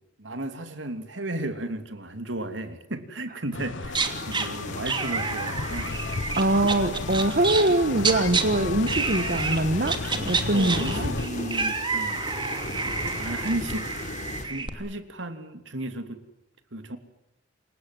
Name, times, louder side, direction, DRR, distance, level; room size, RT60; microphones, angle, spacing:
voice 1, 0.0-6.0 7.2-8.0 10.4-12.4 13.2-13.9 14.4-16.2 16.7-17.0, right 1 dB, 80° right, 9 dB, 3.1 m, -34 dB
sound 1, 3.5-11.3, left 3 dB, 85° left, 1.1 m, -34 dB
sound 2, 3.8-4.5 4.9-8.4 8.9-9.6 9.9-14.7, right 4 dB, 25° right, 2.9 m, -29 dB
sound 3, 3.9-14.4, left 2 dB, 40° left, 3.7 m, -37 dB
voice 2, 6.4-11.1, right 1 dB, 50° right, 9 dB, 1.4 m, -23 dB
29.0 x 25.5 x 7.9 m, 0.92 s
head